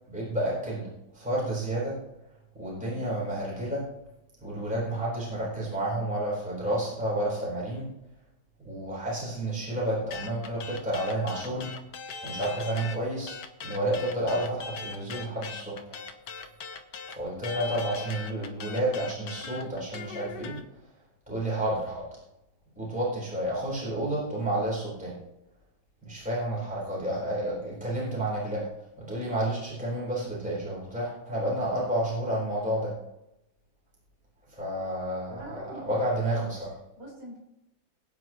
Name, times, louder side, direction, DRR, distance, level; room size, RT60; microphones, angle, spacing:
voice 1, 0.1-2.0 2.5-3.9 4.4-7.9 8.6-11.8 12.2-13.4 13.6-16.0 17.1-20.6 21.3-22.1 22.8-25.2 26.1-28.7 29.0-33.0 34.5-36.8, right 1 dB, 5° right, -7 dB, 4.5 m, -30 dB
sound 1, 10.1-13.0 13.3-20.6, left 5 dB, 65° left, 1.6 m, -40 dB
voice 2, 35.3-36.2 37.0-37.4, right 1 dB, 60° right, -4 dB, 5.1 m, -44 dB
20.5 x 9.6 x 3.1 m, 0.88 s
omnidirectional pair, 2.1 m